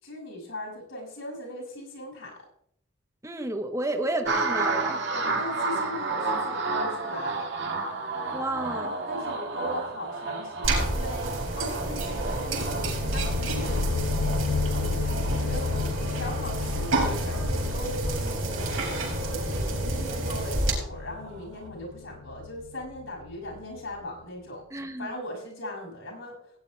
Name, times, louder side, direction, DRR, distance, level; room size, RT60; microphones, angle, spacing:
voice 1, 0.0-2.5 5.1-7.5 8.7-13.8 14.7-24.6 25.0-26.6, left 1 dB, 75° left, 0 dB, 6.3 m, -39 dB
voice 2, 3.2-5.0 8.3-8.9 24.7-25.1, right 2 dB, 15° right, 6 dB, 0.8 m, -31 dB
sound 1, 4.3-20.9 21.2-21.7, right 3 dB, 55° right, 1.6 m, -33 dB
sound 2, 10.6-20.7, right 2 dB, 85° right, 4.8 m, -29 dB
sound 3, 12.4-23.8, left 4 dB, 55° left, 0.5 m, -32 dB
17.0 x 9.8 x 3.2 m, 0.70 s
head